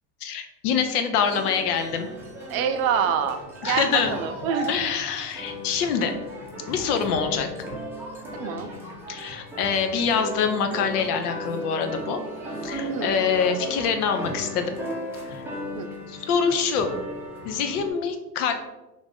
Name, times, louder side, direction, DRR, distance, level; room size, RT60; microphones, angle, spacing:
voice 1, 0.2-2.1 3.6-4.2 4.7-6.1 6.7-7.5 9.1-12.2 12.6-14.7 15.3-15.5 16.1-16.9 17.4-18.6, left 6 dB, 70° left, 6 dB, 0.7 m, -25 dB
sound 1, 1.2-17.9, equal, 5° right, 0.5 m, -36 dB
voice 2, 2.5-4.7 8.3-8.7 12.9-13.2 15.7-15.9, right 7 dB, 60° right, 7 dB, 0.6 m, -26 dB
3.1 x 2.6 x 3.6 m, 1.0 s
supercardioid pair, 130°, 46 cm